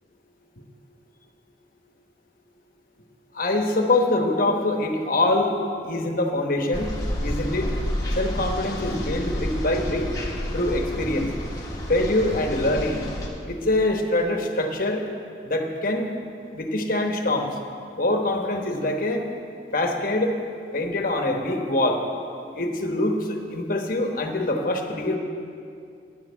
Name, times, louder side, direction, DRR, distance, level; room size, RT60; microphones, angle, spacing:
voice 1, 3.3-5.6 5.8-6.9 7.2-7.7 8.1-10.1 10.5-11.3 11.9-13.0 13.4-15.0 15.4-16.1 16.5-17.5 18.0-19.2 19.7-20.3 20.7-22.0 22.5-25.2, left 2 dB, 50° left, 3 dB, 1.1 m, -24 dB
sound 1, 6.7-13.3, equal, 20° left, 1.3 m, -30 dB
10.5 x 6.6 x 8.1 m, 2.4 s
head